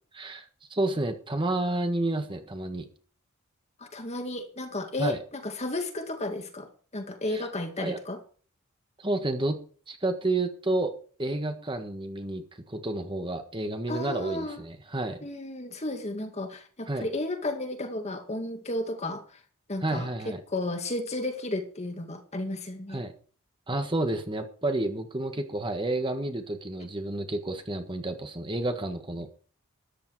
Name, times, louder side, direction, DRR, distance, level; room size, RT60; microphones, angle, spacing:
voice 1, 0.1-0.4 0.7-2.9 5.0-5.2 7.3-7.5 7.8-8.0 9.0-9.6 9.9-10.9 11.2-15.2 16.9-17.1 19.8-20.4 22.9-23.1 23.7-29.3, right 2 dB, 25° right, 1.5 m, -30 dB
voice 2, 3.9-6.7 6.9-8.2 13.9-14.6 15.2-19.2 19.7-20.1 20.5-23.0, left 2 dB, 30° left, 2.1 m, -33 dB
13.5 x 10.0 x 4.8 m
head